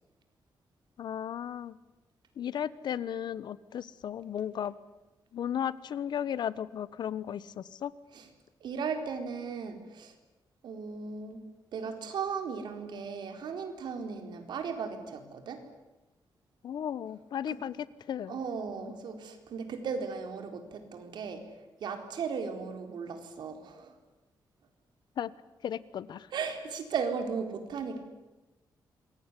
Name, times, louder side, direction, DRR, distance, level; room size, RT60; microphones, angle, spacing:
voice 1, 1.0-1.8 2.4-4.8 5.3-7.9 16.6-18.4 25.2-25.3 25.6-26.3, left 9 dB, 75° left, 18 dB, 1.2 m, -35 dB
voice 2, 8.6-10.1 10.6-11.4 11.7-15.6 17.5-17.6 18.3-21.4 21.8-23.9 26.3-28.0, right 5 dB, 85° right, 7 dB, 4.3 m, -36 dB
27.0 x 22.5 x 9.9 m, 1.1 s
wide cardioid pair, 140°, 7 cm